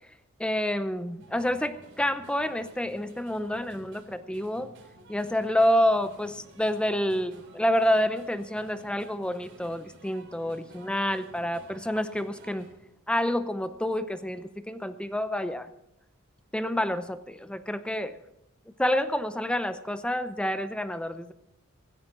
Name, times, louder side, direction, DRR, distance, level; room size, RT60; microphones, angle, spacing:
voice 1, 0.4-4.7 5.1-12.7 13.1-15.7 16.5-18.2 18.8-21.3, left 1 dB, 5° left, 11 dB, 0.6 m, -28 dB
sound 1, 1.2-12.7, right 2 dB, 60° right, 3.3 m, -52 dB
16.0 x 16.0 x 3.9 m, 0.83 s
head